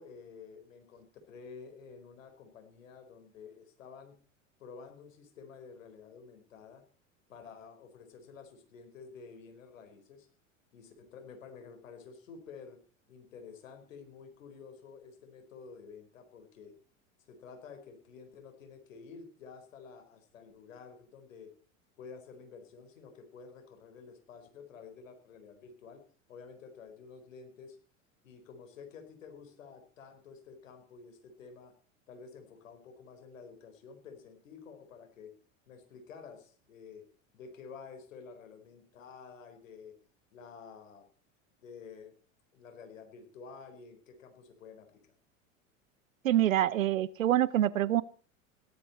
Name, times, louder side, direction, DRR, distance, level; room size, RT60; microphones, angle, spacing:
voice 1, 0.0-4.2 4.6-6.8 7.3-10.3 10.7-12.8 13.1-16.8 17.2-21.5 22.0-26.0 26.3-27.8 28.2-31.7 32.1-35.4 35.7-37.1 37.3-40.0 40.3-41.1 41.6-42.1 42.5-45.0, left 5 dB, 75° left, 6 dB, 4.6 m, -51 dB
voice 2, 46.2-48.0, right 12 dB, 80° right, 20 dB, 0.8 m, -26 dB
17.5 x 13.0 x 4.3 m, 0.42 s
hypercardioid pair, 85°, 39 cm